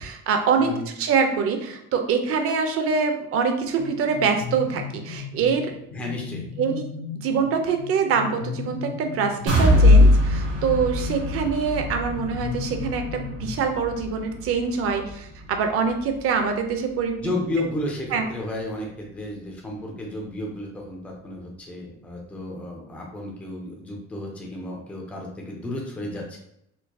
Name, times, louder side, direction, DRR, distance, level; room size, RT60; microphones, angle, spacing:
voice 1, 0.0-0.7 1.0-5.7 6.6-6.8 7.2-17.7 18.1-18.2, right 5 dB, 50° right, 5 dB, 0.5 m, -24 dB
sound 1, 3.7-14.2, left 7 dB, 70° left, 0.5 m, -36 dB
voice 2, 5.9-6.5 17.2-26.4, left 1 dB, 5° left, -2 dB, 0.4 m, -32 dB
sound 2, 9.5-17.3 17.7-17.8 18.2-18.3, left 1 dB, 85° right, 1.4 m, -22 dB
4.4 x 2.6 x 2.3 m, 0.77 s
cardioid pair, 175°, 29 cm